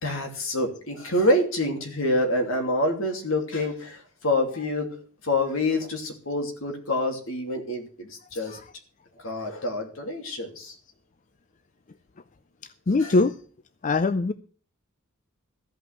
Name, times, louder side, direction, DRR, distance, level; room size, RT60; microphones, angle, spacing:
voice 1, 0.0-4.9 5.2-8.6 9.2-10.8 13.0-13.1, left 1 dB, 65° left, 4 dB, 2.8 m, -27 dB
voice 2, 12.9-13.4 13.8-14.3, left 3 dB, 35° left, 12 dB, 0.5 m, -22 dB
14.5 x 5.6 x 8.3 m, 0.42 s
head